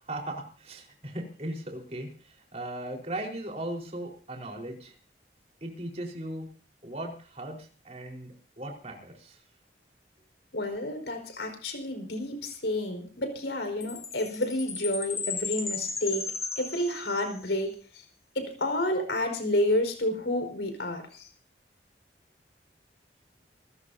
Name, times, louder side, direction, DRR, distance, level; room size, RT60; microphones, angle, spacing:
voice 1, 0.1-4.9 5.6-6.5 6.8-9.4, right 1 dB, 40° right, 1 dB, 4.3 m, -38 dB
voice 2, 10.5-18.0 18.3-21.3, left 1 dB, 80° left, 5 dB, 4.9 m, -30 dB
Chime, 13.8-17.5, left 4 dB, 15° left, 1.1 m, -35 dB
28.5 x 14.5 x 2.7 m, 0.38 s
head